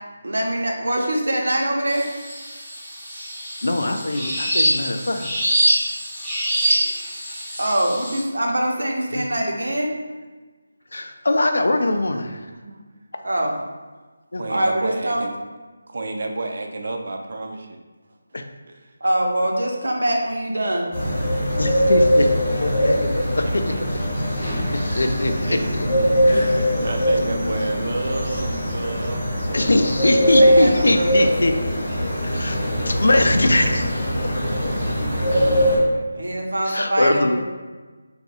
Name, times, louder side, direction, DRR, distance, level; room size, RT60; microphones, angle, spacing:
voice 1, 0.2-2.1 6.7-6.9 7.6-9.9 13.2-13.5 14.5-15.2 19.0-20.9 30.1-31.3 34.3-35.0 35.9-37.4, right 1 dB, 90° right, 0 dB, 0.7 m, -24 dB
sound 1, 1.9-8.2, right 1 dB, ahead, 0.6 m, -24 dB
voice 2, 3.6-5.6 9.1-9.2 10.9-12.5 14.3-14.4 18.3-18.4 21.6-23.7 24.7-26.5 29.5-31.5 32.2-34.2 36.7-37.4, left 2 dB, 70° left, 5 dB, 0.3 m, -22 dB
voice 3, 14.4-15.4 15.9-17.8 18.7-18.9 21.0-21.1 23.4-23.8 25.3-25.7 26.3-30.0 36.1-36.2, right 2 dB, 40° right, 3 dB, 0.3 m, -31 dB
sound 2, 20.9-35.8, equal, 20° left, 0.9 m, -21 dB
2.7 x 2.3 x 4.0 m, 1.3 s
figure-of-eight pair, 180°, 0 cm